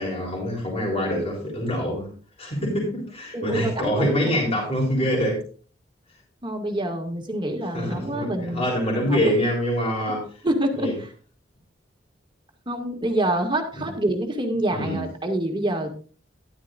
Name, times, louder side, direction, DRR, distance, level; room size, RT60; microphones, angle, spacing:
voice 1, 0.0-2.1 2.4-5.4 7.7-10.2 10.8-10.9 13.8-13.9 14.7-15.0, equal, 35° left, -3 dB, 3.8 m, -25 dB
voice 2, 3.3-4.3 6.4-8.7 9.1-9.4 10.4-11.1 12.7-15.9, right 1 dB, 25° right, 3 dB, 2.1 m, -26 dB
12.5 x 12.0 x 2.5 m, 0.38 s
head